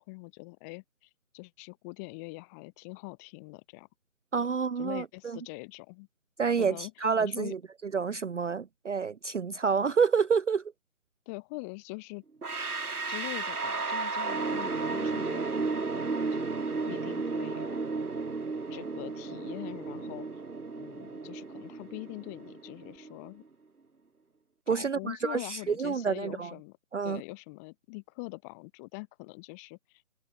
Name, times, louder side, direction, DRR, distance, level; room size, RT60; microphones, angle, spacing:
voice 1, 0.0-3.9 4.8-6.1 6.6-7.5 11.3-12.2 13.1-17.8 18.7-20.4 20.7-23.4 24.7-26.8 27.0-30.0, left 31 dB, 10° left, 8.0 m, -43 dB
voice 2, 4.3-5.4 6.4-7.6 7.9-10.6 24.7-26.5 26.9-27.2, right 5 dB, 55° right, 0.6 m, -28 dB
sound 1, 12.4-23.3, right 4 dB, 90° right, 2.2 m, -33 dB
figure-of-eight pair, 170°, 43 cm